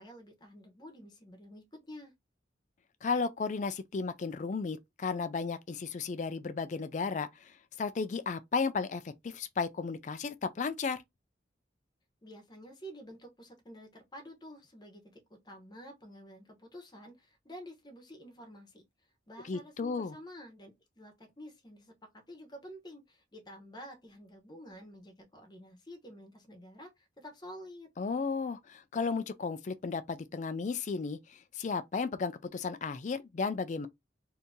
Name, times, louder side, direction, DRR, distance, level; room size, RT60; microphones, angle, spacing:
voice 1, 0.0-2.1 12.2-15.0 15.4-18.8 19.3-27.9, equal, 25° left, 0.9 m, -50 dB
voice 2, 3.0-11.0 19.4-20.2 28.0-33.9, left 4 dB, 40° left, 0.3 m, -34 dB
2.8 x 2.6 x 3.5 m
head